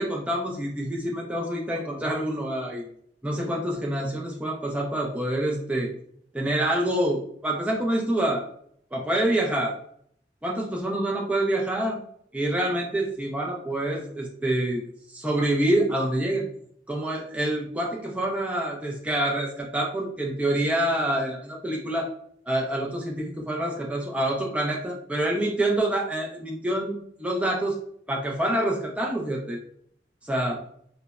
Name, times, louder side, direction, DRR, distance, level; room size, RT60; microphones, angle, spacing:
voice 1, 0.0-2.9 3.2-5.9 6.3-8.4 8.9-9.7 10.4-12.0 12.3-14.8 15.1-16.5 16.9-22.1 22.5-27.8 28.1-29.6 30.2-30.6, right 1 dB, 10° right, -2 dB, 0.3 m, -26 dB
2.9 x 2.0 x 2.3 m, 0.65 s
head